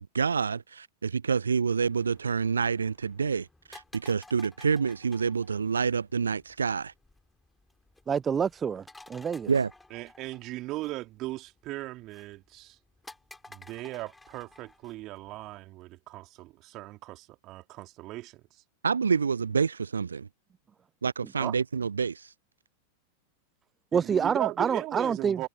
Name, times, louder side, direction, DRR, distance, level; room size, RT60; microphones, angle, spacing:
voice 1, 0.0-6.9 9.5-9.7 18.8-20.3 21.0-22.3, right 5 dB, 75° right, 0.8 m, -28 dB
sound 1, 1.9-15.5, left 2 dB, 5° left, 4.6 m, -55 dB
voice 2, 8.1-8.8 9.1-9.5 23.9-25.4, right 7 dB, 20° right, 0.5 m, -27 dB
voice 3, 9.9-12.8 13.5-18.4 21.4-21.6 23.9-25.5, right 18 dB, 40° right, 3.7 m, -38 dB
figure-of-eight pair, 90°, 0 cm